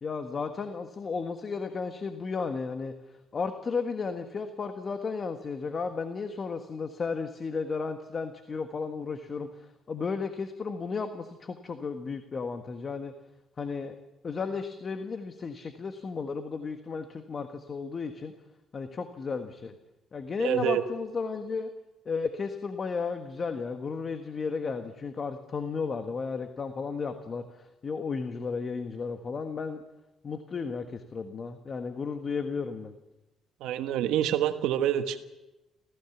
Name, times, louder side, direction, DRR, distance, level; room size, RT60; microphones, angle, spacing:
voice 1, 0.0-2.9 3.3-13.1 13.6-13.9 14.2-18.3 18.7-19.7 20.1-21.7 22.0-29.8 30.2-32.9, left 5 dB, 40° left, 7 dB, 1.5 m, -34 dB
voice 2, 20.4-20.8 33.6-35.2, right 11 dB, 85° right, 8 dB, 1.3 m, -27 dB
26.5 x 16.0 x 7.2 m, 1.0 s
cardioid pair, 95°, 0 cm